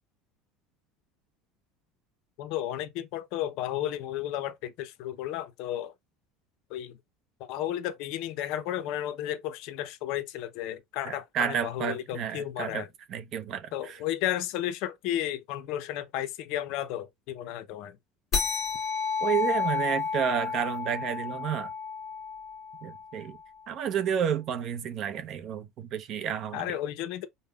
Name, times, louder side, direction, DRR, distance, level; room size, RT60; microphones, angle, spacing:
voice 1, 2.4-5.9 6.7-7.0 7.4-12.9 13.7-18.0 26.5-27.3, left 12 dB, 65° left, 0.5 m, -33 dB
voice 2, 11.1-12.8 13.1-14.0 19.2-21.7 22.8-23.4 23.7-26.7, right 8 dB, 45° right, 0.5 m, -31 dB
sound 1, 18.3-23.2, left 5 dB, 35° left, 1.3 m, -31 dB
5.1 x 2.0 x 2.2 m
cardioid pair, 145°, 0 cm